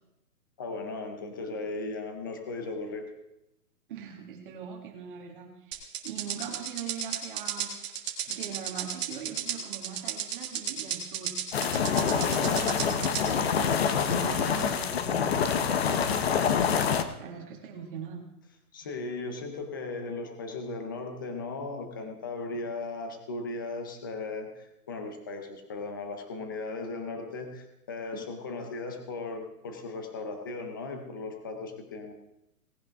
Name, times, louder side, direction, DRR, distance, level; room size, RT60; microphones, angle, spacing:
voice 1, 0.6-3.1 11.8-12.1 18.7-32.1, left 3 dB, 15° left, 5 dB, 0.6 m, -37 dB
voice 2, 3.9-7.7 8.0-11.7 12.0-18.2 28.1-28.3, right 7 dB, 35° right, 2 dB, 2.0 m, -42 dB
sound 1, 5.7-13.3, right 10 dB, 20° right, 1.2 m, -34 dB
sound 2, 11.5-17.0, left 7 dB, 40° left, 0.9 m, -26 dB
18.0 x 10.5 x 3.5 m, 0.87 s
hypercardioid pair, 165°, 46 cm